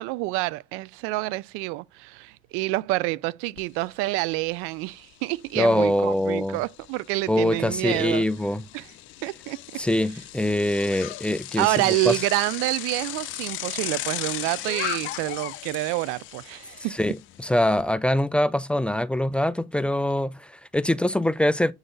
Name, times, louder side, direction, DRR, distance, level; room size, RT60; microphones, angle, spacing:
voice 1, 0.0-8.2 8.7-8.9 9.2-9.6 11.6-17.0, right 20 dB, 90° right, 0.4 m, -27 dB
Bicycle, 3.6-3.7 4.0-17.8, left 16 dB, 70° left, 0.6 m, -37 dB
voice 2, 5.6-6.6 7.3-8.6 9.8-12.2 16.9-21.7, left 1 dB, 5° left, 0.4 m, -24 dB
7.9 x 3.9 x 3.9 m
cardioid pair, 115°, 21 cm